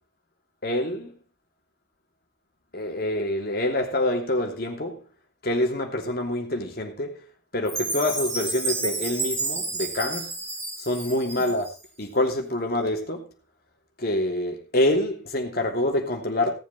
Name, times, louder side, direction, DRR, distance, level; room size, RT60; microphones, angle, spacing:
voice 1, 0.6-1.2 2.7-5.0 5.4-7.2 7.5-10.3 10.8-11.7 12.0-13.3 14.0-16.5, left 1 dB, 55° left, 2.9 m, -26 dB
Chime, 7.6-11.8, right 3 dB, 15° right, 4.8 m, -30 dB
17.5 x 7.4 x 4.2 m
head